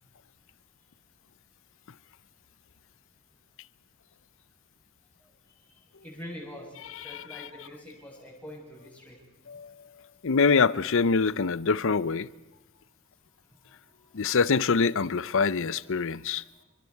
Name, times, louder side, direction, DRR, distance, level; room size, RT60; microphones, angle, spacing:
voice 1, 6.0-6.7 7.0-9.2, left 1 dB, 5° left, 7.6 m, -43 dB
voice 2, 6.9-7.5 9.5-9.7 10.2-12.3 14.1-16.4, left 5 dB, 65° left, 0.7 m, -25 dB
28.0 x 23.0 x 4.7 m
head